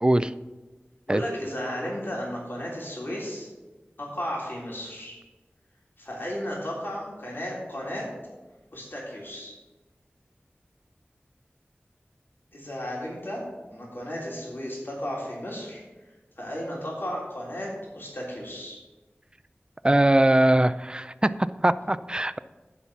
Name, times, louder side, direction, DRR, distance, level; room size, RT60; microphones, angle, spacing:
voice 1, 0.0-0.3 1.1-1.2 19.8-21.3 21.6-22.4, right 1 dB, 20° right, 14 dB, 0.4 m, -21 dB
voice 2, 1.1-3.5 4.0-5.2 6.0-8.0 8.7-9.5 12.5-13.4 13.7-15.8 16.4-18.8, equal, 60° left, -4 dB, 3.5 m, -34 dB
9.8 x 5.6 x 6.0 m, 1.2 s
wide cardioid pair, 50°, 4 cm